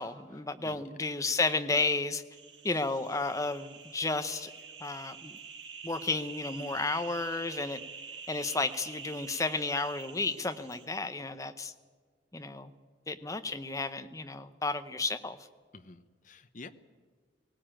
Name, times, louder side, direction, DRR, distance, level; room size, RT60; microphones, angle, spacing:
voice 1, 0.0-2.2 2.6-4.5 4.8-5.4 5.8-7.8 8.3-11.7 12.3-12.7 13.1-15.4, left 3 dB, 15° left, 10 dB, 0.9 m, -32 dB
voice 2, 0.6-0.9 15.7-16.7, left 3 dB, 45° left, 10 dB, 1.0 m, -49 dB
sound 1, 2.3-10.9, right 6 dB, 65° right, 2.9 m, -46 dB
19.5 x 17.5 x 9.0 m, 1.5 s
head